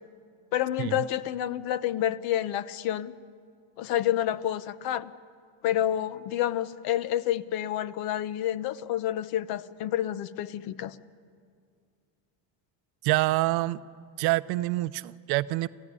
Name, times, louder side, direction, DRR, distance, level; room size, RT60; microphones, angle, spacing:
voice 1, 0.5-3.1 3.8-5.1 5.6-10.9, left 12 dB, 60° left, 16 dB, 0.9 m, -29 dB
voice 2, 13.0-13.8 14.2-15.7, right 19 dB, 65° right, 15 dB, 0.6 m, -26 dB
28.5 x 15.5 x 9.7 m, 2.2 s
cardioid pair, 165°, 41 cm